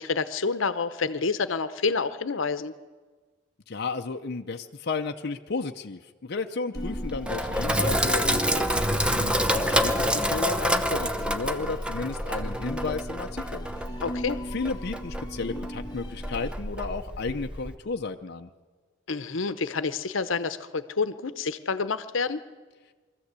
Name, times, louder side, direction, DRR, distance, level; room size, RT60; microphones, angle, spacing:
voice 1, 0.0-2.7 14.0-14.4 19.1-22.4, left 4 dB, 85° left, 13 dB, 0.9 m, -28 dB
voice 2, 3.7-13.7 14.5-18.5, left 4 dB, 55° left, 4 dB, 0.7 m, -33 dB
sound 1, 6.7-16.5, equal, 20° left, 1.1 m, -41 dB
Sink (filling or washing), 6.8-17.8, equal, 5° right, 0.8 m, -28 dB
22.5 x 14.5 x 8.2 m, 1.4 s
head